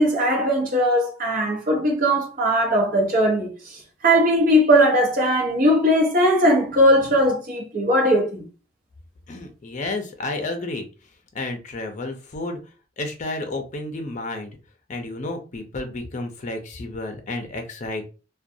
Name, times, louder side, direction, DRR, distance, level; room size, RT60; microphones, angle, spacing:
voice 1, 0.0-3.5 4.0-8.4, equal, 50° right, 0.8 m, -19 dB
voice 2, 9.3-10.9 11.3-12.6 13.0-14.5 14.9-18.1, left 2 dB, 45° left, 0.5 m, -31 dB
2.4 x 2.2 x 2.6 m
head